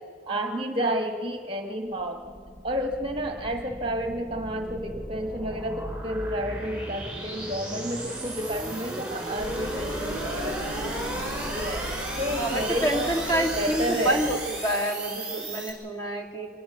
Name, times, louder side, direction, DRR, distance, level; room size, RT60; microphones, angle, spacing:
voice 1, 0.3-2.2 2.6-11.9 12.2-14.2, equal, 25° right, 5 dB, 1.3 m, -31 dB
sound 1, 1.9-15.7, right 1 dB, 5° right, 5.9 m, -35 dB
Engine, 9.4-14.4, equal, 85° left, 4.7 m, -36 dB
voice 2, 12.3-16.5, right 1 dB, 20° left, 1 dB, 2.5 m, -28 dB
25.5 x 19.5 x 6.8 m, 2.3 s
head